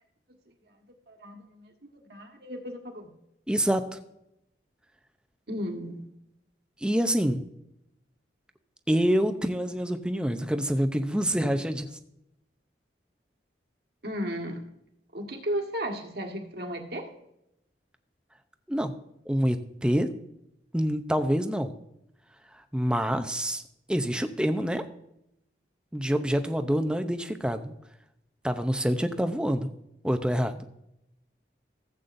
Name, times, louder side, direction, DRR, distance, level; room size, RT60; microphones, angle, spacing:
voice 1, 1.1-3.1 5.5-6.0 14.0-14.6 15.1-17.1, equal, 60° right, 2 dB, 1.7 m, -35 dB
voice 2, 3.5-4.0 6.8-7.4 8.9-11.9 18.7-19.0 19.3-20.1 20.7-21.7 22.7-23.6 23.9-24.8 25.9-27.7 28.4-29.7 30.0-30.6, equal, 5° right, 7 dB, 0.6 m, -26 dB
15.0 x 8.3 x 2.6 m, 0.81 s
head